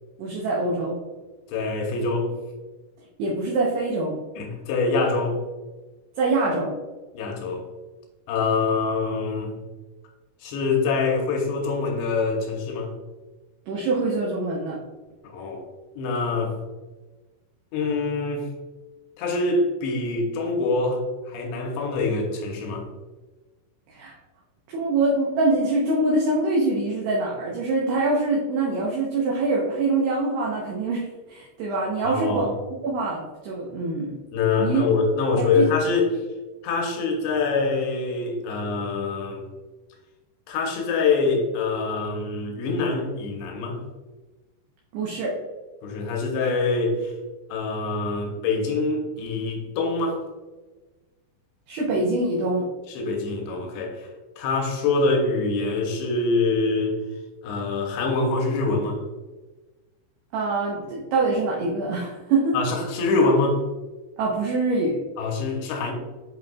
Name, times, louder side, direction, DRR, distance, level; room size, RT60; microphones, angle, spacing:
voice 1, 0.2-1.0 3.2-4.2 6.2-6.7 13.7-14.8 23.9-24.1 24.7-32.5 32.8-34.1 34.6-34.8 35.4-35.7 44.9-45.4 51.7-52.7 60.3-62.6 64.2-64.9, right 2 dB, 75° right, -3 dB, 2.5 m, -24 dB
voice 2, 1.5-2.3 4.4-5.4 7.1-7.7 8.3-9.5 10.4-12.9 15.2-15.6 16.0-16.6 17.7-18.5 19.2-21.0 21.3-22.9 32.0-32.5 34.3-36.1 36.6-39.4 40.5-43.8 45.8-47.1 47.5-50.2 52.9-54.1 54.4-57.0 57.4-59.0 62.5-63.6 65.2-65.9, left 3 dB, 75° left, 2 dB, 2.7 m, -24 dB
10.5 x 4.4 x 2.3 m, 1.2 s
omnidirectional pair, 5.8 m